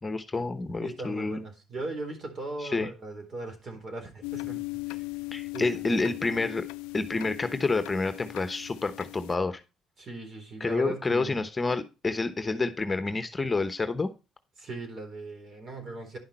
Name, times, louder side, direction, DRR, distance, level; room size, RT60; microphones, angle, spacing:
voice 1, 0.0-1.4 2.6-2.9 5.3-6.7 6.9-9.6 10.6-14.1, left 3 dB, 25° left, 1.0 m, -29 dB
voice 2, 0.8-5.1 5.5-6.5 10.0-11.5 14.6-16.2, right 2 dB, 50° right, 4.0 m, -39 dB
sound 1, 4.2-9.4, left 24 dB, 85° left, 0.4 m, -38 dB
10.5 x 5.7 x 4.4 m
supercardioid pair, 65°, 0 cm